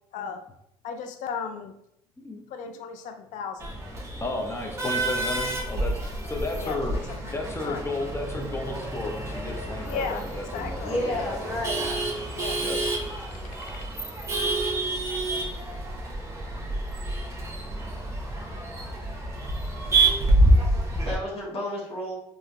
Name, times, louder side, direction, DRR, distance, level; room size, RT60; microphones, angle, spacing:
voice 1, 0.8-1.7 2.5-3.8 6.6-6.8 7.1-7.3 7.6-7.8 9.8-11.3 12.3-12.6 13.6-13.7, left 6 dB, 65° left, 6 dB, 0.4 m, -35 dB
Male speech man speaking / Laughter / Chatter, 3.6-21.1, right 2 dB, 20° right, 0.9 m, -28 dB
voice 2, 4.2-6.0 6.2-6.9 7.3-11.6 12.6-12.8, left 2 dB, 20° left, 2 dB, 0.8 m, -33 dB
voice 3, 10.8-11.9 21.0-22.1, left 1 dB, 45° left, -5 dB, 1.3 m, -31 dB
3.6 x 2.7 x 2.2 m, 0.76 s
supercardioid pair, 65°, 14 cm